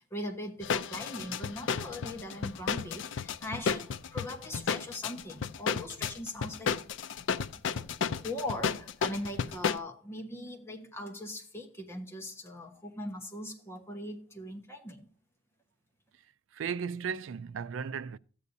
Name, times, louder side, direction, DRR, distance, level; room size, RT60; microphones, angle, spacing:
voice 1, 0.0-6.8 7.8-15.1, left 1 dB, 15° left, 1.2 m, -40 dB
sound 1, 0.6-9.8, left 6 dB, 75° left, 0.4 m, -33 dB
voice 2, 16.5-18.2, right 6 dB, 90° right, 0.4 m, -35 dB
13.5 x 8.4 x 2.7 m
head